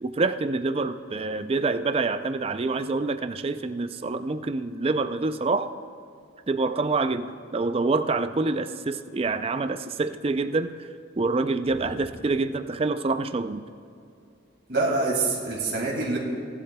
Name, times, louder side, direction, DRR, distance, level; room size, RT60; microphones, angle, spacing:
voice 1, 0.0-5.7 6.5-10.9 11.2-13.6, right 3 dB, 30° right, 10 dB, 0.4 m, -26 dB
voice 2, 14.7-16.2, right 3 dB, 60° right, -2 dB, 2.3 m, -26 dB
18.5 x 12.0 x 2.3 m, 2.5 s
head